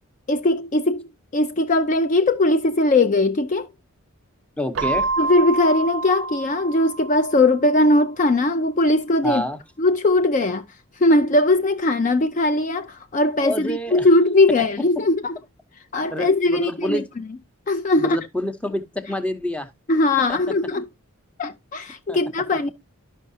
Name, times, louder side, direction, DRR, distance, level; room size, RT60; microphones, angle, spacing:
voice 1, 0.3-1.0 1.3-3.7 5.2-9.4 9.8-10.6 11.0-15.4 15.9-17.0 17.7-18.2 19.9-20.8 21.4-22.7, left 2 dB, 35° left, 0.4 m, -19 dB
voice 2, 4.6-5.1 9.2-9.6 13.4-14.1 16.1-17.0 17.9-19.7 20.3-20.4 22.1-22.2, left 1 dB, 5° left, 0.7 m, -27 dB
Keyboard (musical), 4.7-7.5, right 3 dB, 65° right, 0.5 m, -27 dB
12.0 x 5.5 x 2.7 m
head